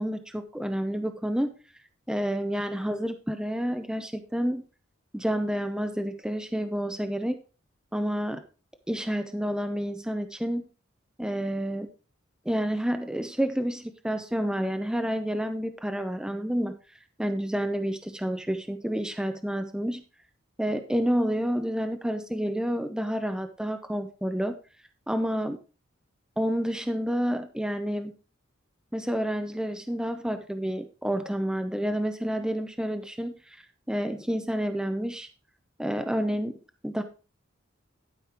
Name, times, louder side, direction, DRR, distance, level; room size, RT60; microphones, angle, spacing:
voice 1, 0.0-1.5 2.1-4.6 5.1-7.4 7.9-8.4 8.9-10.7 11.2-11.9 12.5-16.8 17.2-20.0 20.6-24.6 25.1-25.6 26.4-28.1 28.9-33.6 33.9-35.3 35.8-36.5 36.8-37.0, equal, 5° right, 7 dB, 0.6 m, -29 dB
12.0 x 5.4 x 4.4 m, 0.34 s
head